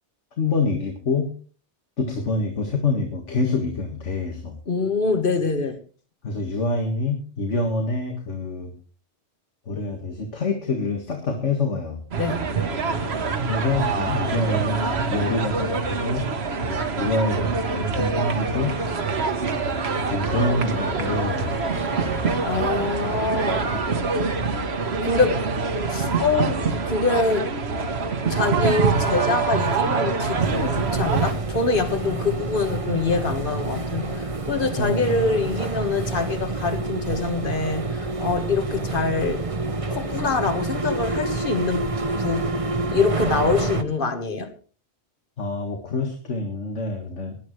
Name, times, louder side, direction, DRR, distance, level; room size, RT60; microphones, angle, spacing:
voice 1, 0.4-1.3 2.0-4.6 6.2-8.7 9.7-12.0 13.4-16.3 16.7-18.8 20.1-21.5 34.8-35.3 45.4-47.4, left 3 dB, 90° left, 2.1 m, -26 dB
voice 2, 4.7-5.8 12.2-12.4 22.4-23.6 24.8-25.4 25.9-26.6 26.9-27.5 28.3-39.4 39.9-41.9 42.2-42.5 42.9-44.5, left 4 dB, 50° left, 1.6 m, -25 dB
sound 1, 12.1-31.3, right 4 dB, 65° right, 1.4 m, -25 dB
sound 2, 18.5-23.8, right 1 dB, 10° right, 1.5 m, -35 dB
sound 3, 30.4-43.8, right 2 dB, 30° right, 0.9 m, -28 dB
19.5 x 11.5 x 3.2 m
omnidirectional pair, 1.2 m